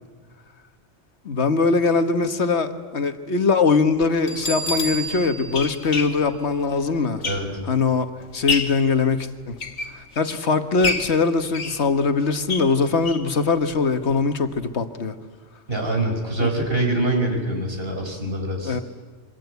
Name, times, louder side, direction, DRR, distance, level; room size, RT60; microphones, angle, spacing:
voice 1, 1.2-7.2 7.7-8.1 8.3-9.6 9.9-15.1 16.4-16.5 18.6-18.8, left 4 dB, 70° left, 8 dB, 1.6 m, -21 dB
sound 1, 3.9-4.1 4.8-7.8 8.2-8.9 9.4-10.4 10.8-13.3 13.7-13.8 14.1-14.2 14.5-14.6, left 4 dB, 90° left, 2.0 m, -29 dB
Bell, 4.3-7.0, right 1 dB, 40° left, 1.9 m, -31 dB
voice 2, 15.7-18.8, right 2 dB, 55° right, 3 dB, 4.8 m, -24 dB
26.5 x 23.5 x 8.2 m, 1.4 s
omnidirectional pair, 1.2 m